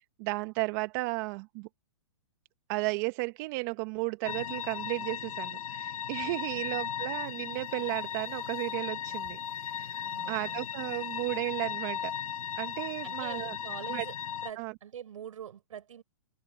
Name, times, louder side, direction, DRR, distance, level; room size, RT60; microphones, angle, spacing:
voice 1, 0.2-1.7 2.7-12.1 12.6-13.6 13.9-14.0 14.6-14.7, right 25 dB, 35° right, 1.1 m, -34 dB
sound 1, 4.2-14.5, left 9 dB, 85° left, 0.7 m, -37 dB
voice 2, 10.0-10.7 13.0-14.1 14.4-16.0, right 9 dB, 75° right, 5.5 m, -44 dB
hypercardioid pair, 145°, 17 cm